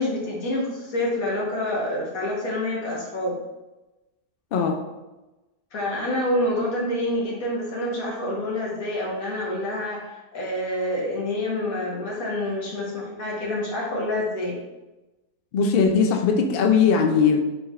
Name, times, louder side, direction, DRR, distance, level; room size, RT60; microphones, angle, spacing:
voice 1, 0.0-3.4 5.7-14.6, left 1 dB, 65° left, -4 dB, 1.6 m, -27 dB
voice 2, 15.5-17.4, left 6 dB, 85° left, 3 dB, 0.5 m, -19 dB
4.9 x 3.2 x 2.4 m, 1.1 s
omnidirectional pair, 1.6 m